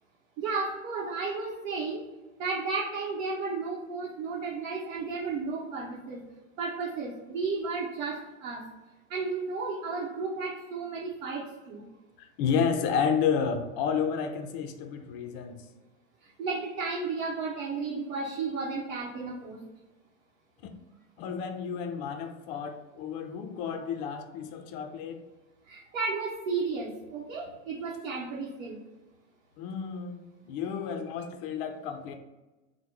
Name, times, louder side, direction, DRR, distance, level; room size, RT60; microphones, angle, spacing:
voice 1, 0.4-2.0 2.4-6.2 6.6-8.6 9.1-11.8 16.2-19.6 23.7-23.8 25.7-28.8, right 4 dB, 80° right, -5 dB, 0.9 m, -33 dB
voice 2, 12.2-15.6 21.2-25.2 29.6-32.1, left 6 dB, 45° left, 7 dB, 0.4 m, -31 dB
2.9 x 2.1 x 3.4 m, 1.1 s
hypercardioid pair, 125°, 40 cm